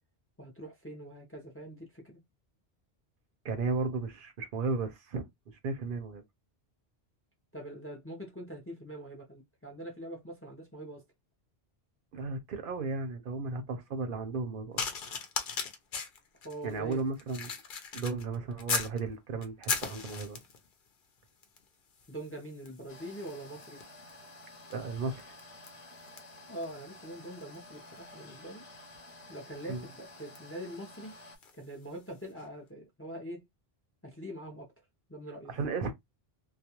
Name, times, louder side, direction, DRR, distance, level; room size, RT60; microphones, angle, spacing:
voice 1, 0.4-2.2 7.5-11.1 16.4-17.0 22.1-23.8 26.5-28.6 29.3-31.2 31.6-33.4 34.0-34.7 35.1-35.5, right 1 dB, 20° left, 0.5 m, -43 dB
voice 2, 3.4-5.3 5.6-6.2 12.1-14.9 16.6-17.5 17.9-20.4 24.7-25.2 29.7-29.8 35.5-35.9, right 4 dB, 60° right, 0.7 m, -34 dB
sound 1, 14.8-19.0 19.4-20.7 21.4-21.7 22.0-31.6 32.3-32.5, left 5 dB, 60° left, 0.7 m, -40 dB
sound 2, 22.9-31.4, left 2 dB, 85° left, 1.0 m, -52 dB
2.3 x 2.2 x 2.8 m
omnidirectional pair, 1.0 m